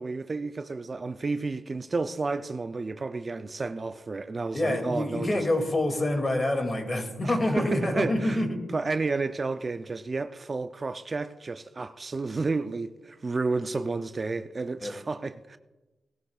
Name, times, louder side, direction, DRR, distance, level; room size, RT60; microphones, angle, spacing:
voice 1, 0.0-5.5 7.2-8.4 8.7-15.6, right 3 dB, 40° right, 0.5 m, -31 dB
voice 2, 4.5-8.6 14.8-14.9, left 1 dB, 35° left, 2.4 m, -26 dB
18.5 x 13.0 x 2.4 m
cardioid pair, 60°, 0 cm